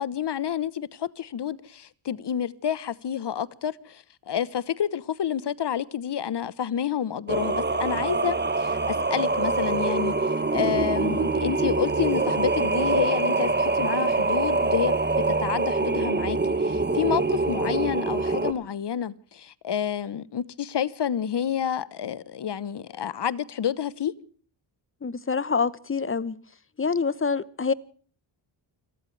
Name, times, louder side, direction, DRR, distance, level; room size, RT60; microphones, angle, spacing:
voice 1, 0.0-24.1, left 9 dB, 55° left, 1.1 m, -29 dB
Singing, 7.3-18.5, right 3 dB, 20° right, 1.7 m, -25 dB
voice 2, 25.0-26.4 26.8-27.7, left 5 dB, 25° left, 1.0 m, -26 dB
30.0 x 14.0 x 3.3 m
cardioid pair, 75°, 50 cm